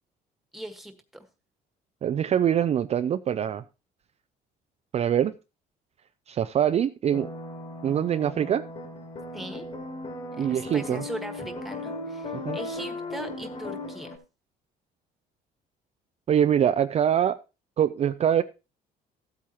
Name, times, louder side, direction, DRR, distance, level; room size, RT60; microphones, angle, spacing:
voice 1, 0.5-1.2 9.3-9.7 10.3-14.1, right 1 dB, ahead, 1.6 m, -39 dB
voice 2, 2.0-3.6 4.9-5.3 6.3-7.3 7.8-8.7 10.4-11.0 12.3-12.6 16.3-17.4 17.8-18.4, right 9 dB, 40° right, 0.4 m, -24 dB
sound 1, 7.1-14.2, left 2 dB, 40° left, 3.7 m, -37 dB
14.5 x 8.5 x 3.0 m
cardioid pair, 110°, 17 cm